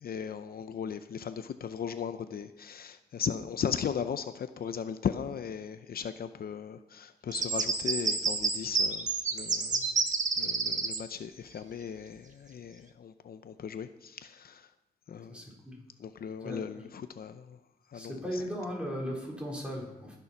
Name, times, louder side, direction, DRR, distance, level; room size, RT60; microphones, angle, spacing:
voice 1, 0.0-9.1 9.3-9.8 10.4-14.6 15.1-15.4 16.0-17.4 17.9-18.4, left 7 dB, 65° left, 0.6 m, -37 dB
sound 1, 7.3-11.0, right 4 dB, 50° right, 1.5 m, -29 dB
voice 2, 17.9-20.2, equal, 5° right, 4.1 m, -36 dB
19.0 x 7.0 x 5.9 m
wide cardioid pair, 110°, 17 cm